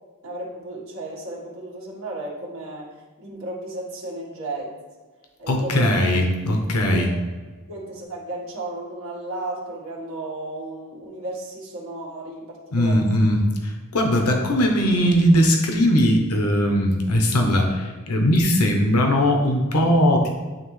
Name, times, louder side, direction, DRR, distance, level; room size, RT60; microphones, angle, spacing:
voice 1, 0.2-4.8 5.4-6.2 6.9-7.1 7.7-13.2 14.2-14.4, right 2 dB, 65° right, -4 dB, 1.5 m, -34 dB
voice 2, 5.5-7.1 12.7-20.3, equal, 85° left, 2 dB, 0.9 m, -19 dB
9.0 x 3.4 x 3.2 m, 1.4 s
head